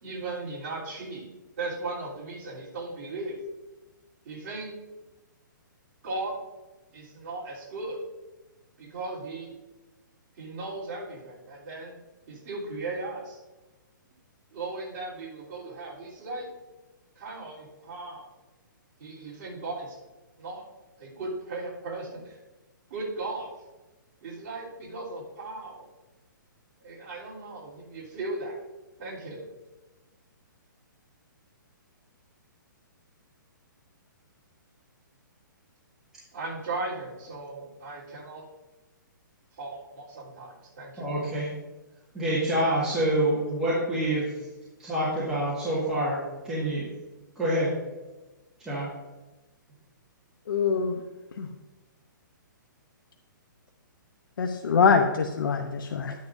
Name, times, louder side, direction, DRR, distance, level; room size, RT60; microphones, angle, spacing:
voice 1, 0.0-1.3 1.6-3.3 4.2-4.7 6.0-6.3 6.9-8.0 8.8-9.5 10.4-12.0 12.3-13.4 14.5-16.5 17.1-18.3 19.0-20.0 20.4-20.6 21.0-22.4 22.9-23.5 24.2-25.9 26.8-28.6 29.0-29.4 36.3-38.4 39.6-41.1, right 2 dB, 40° right, -8 dB, 3.3 m, -37 dB
voice 2, 41.0-41.5 42.1-44.3 44.8-46.2 46.4-46.9 47.4-47.7 48.7-48.9, right 1 dB, 5° right, -11 dB, 1.7 m, -26 dB
voice 3, 50.5-51.0 51.4-51.5 54.4-56.1, left 5 dB, 85° left, 4 dB, 0.8 m, -24 dB
10.5 x 9.4 x 2.6 m, 1.1 s
hypercardioid pair, 170°, 11 cm